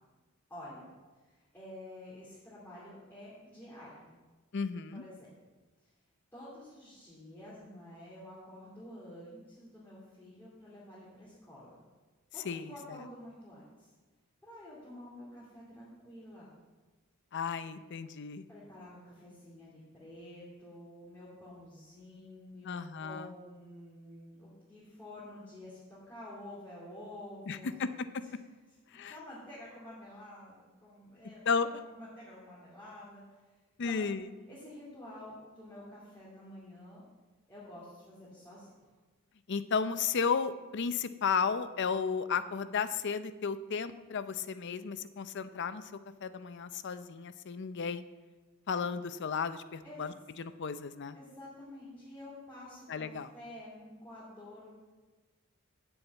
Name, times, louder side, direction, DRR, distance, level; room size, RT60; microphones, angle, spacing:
voice 1, 0.5-0.9 1.3-4.2 4.9-5.3 6.3-11.7 12.3-13.9 14.4-16.5 18.5-27.7 28.9-31.7 31.9-33.2 33.8-34.1 34.5-37.0 37.5-38.9 49.8-50.0 51.1-54.7, left 1 dB, 10° left, -10 dB, 2.7 m, -49 dB
voice 2, 4.5-5.0 12.4-13.0 17.3-18.4 22.6-23.3 27.5-28.2 28.9-29.1 31.5-31.8 33.8-34.3 39.5-45.9 46.2-48.0 48.7-51.2 52.9-53.3, left 5 dB, 55° left, 12 dB, 0.5 m, -34 dB
7.1 x 7.1 x 8.1 m, 1.2 s
head